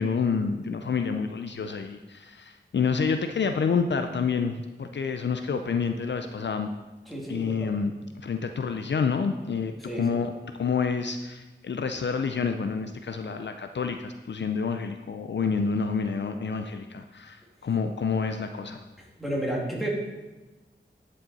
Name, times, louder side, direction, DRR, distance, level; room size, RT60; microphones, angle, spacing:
voice 1, 0.0-6.7 7.3-7.9 8.2-10.3 10.6-18.8, left 5 dB, 65° left, 7 dB, 0.5 m, -28 dB
voice 2, 7.1-7.8 9.8-10.0 19.2-19.9, right 1 dB, ahead, -4 dB, 2.4 m, -31 dB
11.0 x 5.4 x 4.1 m, 1.1 s
wide cardioid pair, 80°, 20 cm